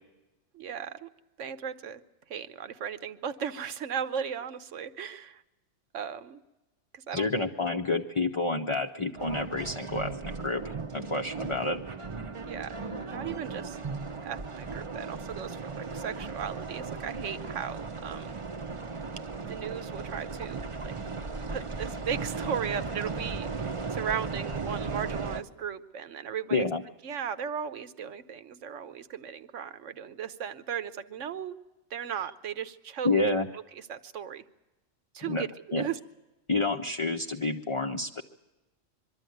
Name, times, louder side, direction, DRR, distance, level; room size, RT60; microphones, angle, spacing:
voice 1, 0.5-1.1 1.4-2.0 2.3-5.4 5.9-6.4 6.9-7.3 12.5-13.8 14.2-18.4 19.5-20.9 21.5-26.7 27.0-31.6 31.9-33.2 33.7-34.4 35.1-36.0, right 8 dB, 80° right, 12 dB, 1.2 m, -36 dB
voice 2, 7.1-11.8 26.5-26.8 33.0-33.5 35.3-35.5 35.7-35.9 36.5-38.2, left 3 dB, 35° left, 4 dB, 0.6 m, -29 dB
sound 1, 9.1-25.4, right 4 dB, 30° right, 0.7 m, -36 dB
23.0 x 12.5 x 9.2 m, 1.1 s
omnidirectional pair, 1.3 m